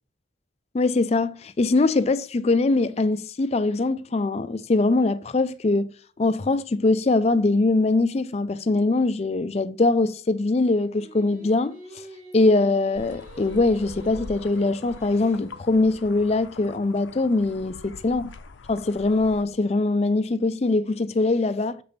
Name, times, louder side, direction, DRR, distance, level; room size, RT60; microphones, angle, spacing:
voice 1, 0.7-12.0 12.3-18.3 18.7-21.8, left 2 dB, 35° left, 0.4 m, -22 dB
Singing, 10.9-16.1, right 1 dB, 40° right, 1.5 m, -47 dB
sound 1, 13.0-19.5, left 4 dB, 80° left, 0.6 m, -44 dB
6.8 x 5.1 x 4.2 m
head